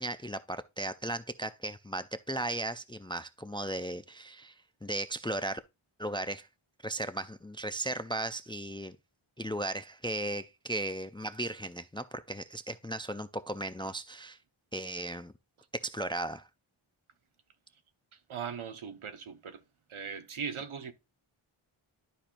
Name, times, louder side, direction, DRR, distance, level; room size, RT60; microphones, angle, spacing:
voice 1, 0.0-5.6 6.0-6.5 6.8-9.0 9.4-14.4 14.7-15.3 15.8-16.5, right 1 dB, 10° left, 0.3 m, -36 dB
voice 2, 18.3-19.6 19.9-20.9, right 6 dB, 75° right, 0.9 m, -39 dB
12.0 x 4.3 x 2.5 m
wide cardioid pair, 65°, 50 cm